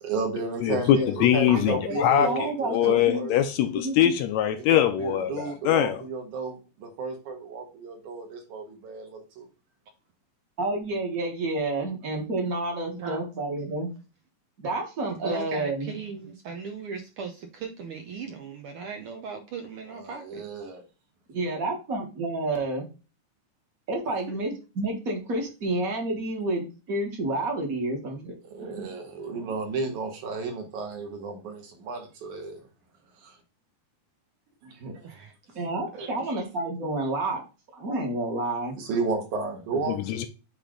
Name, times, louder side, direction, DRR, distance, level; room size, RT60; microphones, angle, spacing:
voice 1, 0.0-3.4 4.6-9.5 19.9-20.8 28.5-32.6 33.2-33.4 34.6-35.1 36.0-36.4 38.7-40.1, right 4 dB, 75° right, 2.9 m, -33 dB
voice 2, 0.6-6.0 40.1-40.3, left 11 dB, 75° left, 1.7 m, -23 dB
voice 3, 1.8-3.3 3.8-4.1 10.6-13.9 14.6-15.9 21.3-22.8 23.9-28.4 28.7-28.9 35.5-37.4 37.7-38.8, right 2 dB, 40° right, 1.3 m, -29 dB
voice 4, 15.1-20.7 24.3-24.4 29.3-29.5 35.0-35.6 35.9-36.3, right 5 dB, 90° right, 1.2 m, -38 dB
8.4 x 3.3 x 3.8 m
omnidirectional pair, 3.5 m